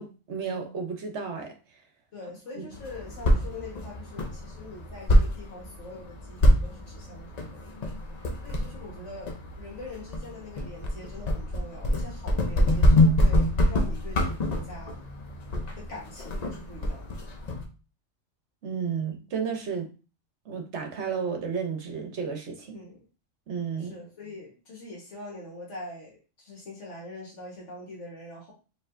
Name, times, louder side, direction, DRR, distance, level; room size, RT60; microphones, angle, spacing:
voice 1, 0.0-1.5 2.6-2.7 3.3-3.4 8.6-8.7 18.6-19.9 20.5-22.8 23.5-23.9, right 6 dB, 60° right, 1.1 m, -32 dB
voice 2, 2.1-7.8 8.4-15.0 15.8-17.2 22.7-23.0 23.8-28.5, left 2 dB, 65° left, 1.6 m, -43 dB
sound 1, 2.7-17.6, left 1 dB, 45° left, 0.6 m, -26 dB
4.6 x 3.3 x 2.5 m
omnidirectional pair, 1.4 m